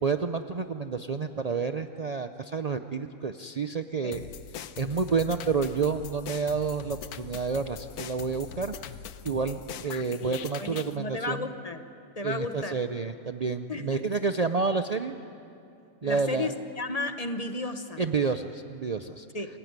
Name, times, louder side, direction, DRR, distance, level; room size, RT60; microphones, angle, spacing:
voice 1, 0.0-4.3 4.8-8.8 9.2-11.4 12.2-15.2 16.0-16.5 18.0-19.3, right 5 dB, 80° right, 8 dB, 0.3 m, -29 dB
sound 1, 4.1-11.0, left 8 dB, 80° left, 1.3 m, -41 dB
voice 2, 10.2-11.8 12.2-12.8 13.7-14.0 16.0-18.0 19.3-19.5, left 3 dB, 30° left, 8 dB, 1.0 m, -33 dB
28.0 x 16.0 x 9.4 m, 2.6 s
omnidirectional pair, 1.6 m